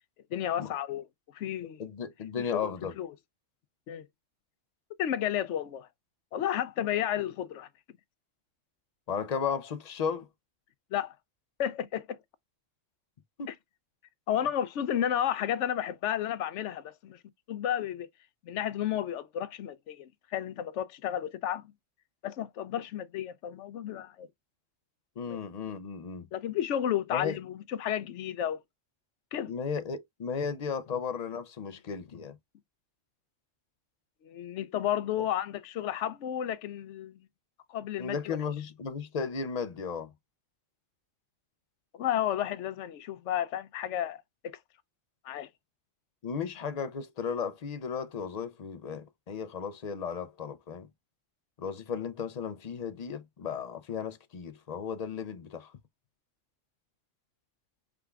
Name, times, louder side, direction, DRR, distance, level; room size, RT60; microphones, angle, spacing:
voice 1, 0.3-1.1 1.3-1.8 2.4-2.6 3.0-3.1 3.9-4.1 5.0-5.9 6.3-7.7 10.9-11.2 11.6-12.2 13.5-13.6 14.3-17.2 17.5-18.1 18.4-21.7 22.2-24.3 25.3-25.4 26.3-28.6 29.3-29.5 34.2-37.3 37.7-38.4 41.9-44.6 45.2-45.5, left 10 dB, 70° left, 0.9 m, -32 dB
voice 2, 1.8-2.9 9.1-10.3 13.4-13.5 25.2-26.3 27.1-27.4 29.5-32.4 38.0-40.1 46.2-50.9 51.6-55.7, left 6 dB, 50° left, 0.5 m, -35 dB
5.0 x 3.4 x 2.3 m
omnidirectional pair, 1.3 m